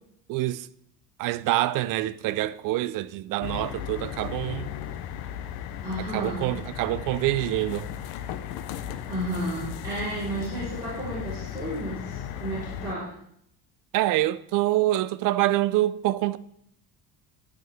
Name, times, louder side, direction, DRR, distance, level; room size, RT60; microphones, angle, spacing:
voice 1, 0.3-0.7 1.2-4.7 6.0-7.9 13.9-16.4, right 15 dB, 60° right, 0.4 m, -26 dB
sound 1, 3.4-12.9, left 9 dB, 75° left, 0.7 m, -36 dB
voice 2, 5.8-6.5 9.1-13.1, right 1 dB, 10° right, 3.6 m, -32 dB
12.0 x 6.3 x 3.4 m
cardioid pair, 160°, 37 cm